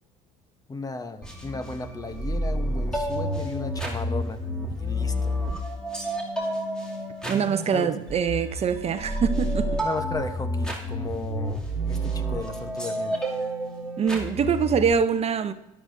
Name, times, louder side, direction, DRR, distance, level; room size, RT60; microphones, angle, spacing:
voice 1, 0.7-5.4 7.7-7.9 9.8-13.2, left 3 dB, 20° left, 1.0 m, -35 dB
sound 1, 1.2-14.9, equal, 5° left, 2.5 m, -30 dB
voice 2, 7.3-9.8 14.0-15.5, right 7 dB, 40° right, 0.7 m, -24 dB
13.0 x 11.5 x 2.7 m
supercardioid pair, 85°, 16 cm